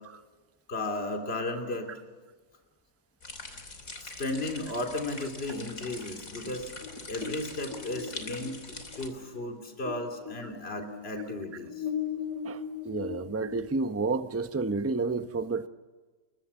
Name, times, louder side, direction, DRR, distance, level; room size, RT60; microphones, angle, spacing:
voice 1, 0.7-1.9 4.0-6.7 7.1-11.9, left 2 dB, 35° left, 3.3 m, -35 dB
sound 1, 3.2-9.1, left 3 dB, 55° left, 3.6 m, -43 dB
sound 2, 6.5-10.0 10.3-14.4, left 7 dB, 90° right, 3.1 m, -38 dB
voice 2, 12.4-15.7, right 3 dB, 15° right, 0.5 m, -30 dB
29.5 x 22.5 x 7.1 m
omnidirectional pair, 1.7 m